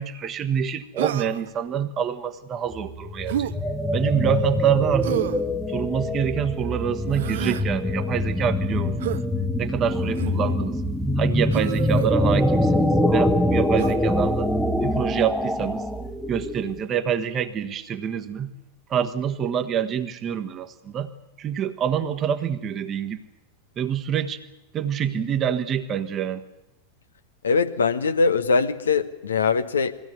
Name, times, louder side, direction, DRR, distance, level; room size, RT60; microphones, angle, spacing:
voice 1, 0.0-3.5 3.9-5.2 5.7-9.0 9.6-10.8 11.2-14.5 14.8-15.8 16.3-18.5 18.9-21.1 21.4-23.2 23.8-24.4 24.7-26.4, right 8 dB, 30° right, 8 dB, 1.4 m, -26 dB
Human voice, 1.0-1.5 3.3-3.5 5.0-5.5 7.1-7.7 9.0-9.2 10.1-10.4 11.5-12.1 13.8-14.0, right 12 dB, 55° right, 0.7 m, -29 dB
sound 1, 2.7-16.9, left 1 dB, 5° left, 1.1 m, -24 dB
voice 2, 27.4-29.9, left 4 dB, 70° left, 10 dB, 1.1 m, -22 dB
22.0 x 16.5 x 9.5 m, 0.92 s
figure-of-eight pair, 90°, 0 cm